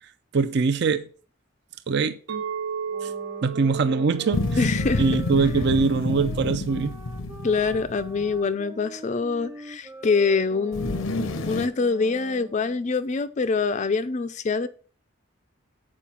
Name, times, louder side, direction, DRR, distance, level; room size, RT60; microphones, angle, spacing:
voice 1, 0.0-1.1 1.9-2.5 3.0-3.1 3.4-4.6 5.0-7.0, right 4 dB, 55° right, 0.4 m, -23 dB
Chink clink, 2.3-6.5, right 6 dB, 85° right, 0.8 m, -35 dB
sound 1, 2.9-12.9, right 1 dB, 15° right, 0.7 m, -43 dB
sound 2, 4.3-8.3 10.7-11.7, left 2 dB, 80° left, 0.7 m, -29 dB
voice 2, 4.6-5.0 7.4-14.7, left 4 dB, 35° left, 0.4 m, -25 dB
7.5 x 4.8 x 5.6 m
head